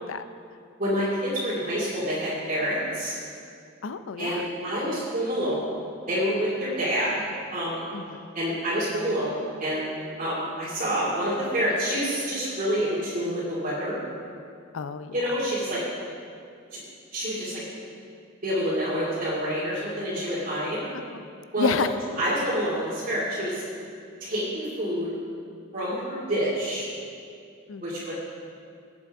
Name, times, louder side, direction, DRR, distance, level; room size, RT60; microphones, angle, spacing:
voice 1, 0.8-3.2 4.2-5.7 6.1-7.2 7.5-7.8 8.3-9.9 10.2-14.0 15.1-15.8 16.7-16.8 17.1-17.6 18.4-20.8 21.5-21.7 22.2-23.6 24.2-25.1 25.7-26.9 27.8-28.1, equal, 45° right, -11 dB, 2.6 m, -27 dB
voice 2, 3.8-4.4 7.9-8.2 14.7-15.1 20.9-21.3 21.6-21.9 27.7-27.8, left 5 dB, 80° left, 11 dB, 0.5 m, -30 dB
18.5 x 7.7 x 3.6 m, 2.4 s
head